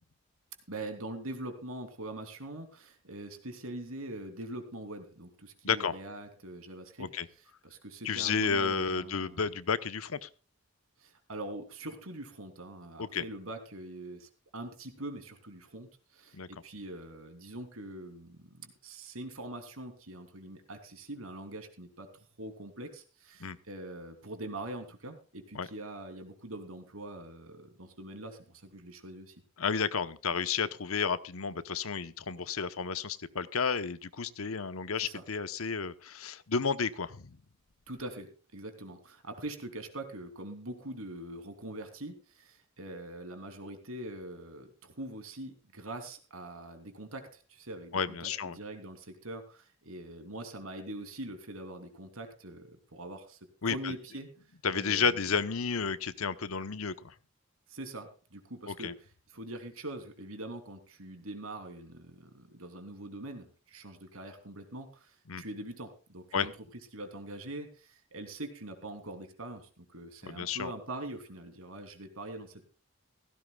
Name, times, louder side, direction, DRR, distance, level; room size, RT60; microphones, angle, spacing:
voice 1, 0.7-9.4 11.0-29.3 35.0-35.2 37.9-54.3 54.7-55.3 57.7-66.5 66.9-72.7, right 1 dB, 85° right, 6 dB, 3.1 m, -43 dB
voice 2, 8.0-10.3 13.0-13.2 16.3-16.5 23.4-23.6 25.5-25.7 29.6-37.3 47.9-48.6 53.6-53.9 54.6-57.1 58.7-58.9 65.3-65.4 66.3-66.5 70.3-70.7, left 5 dB, 85° left, 13 dB, 0.9 m, -32 dB
17.0 x 16.0 x 2.3 m, 0.36 s
head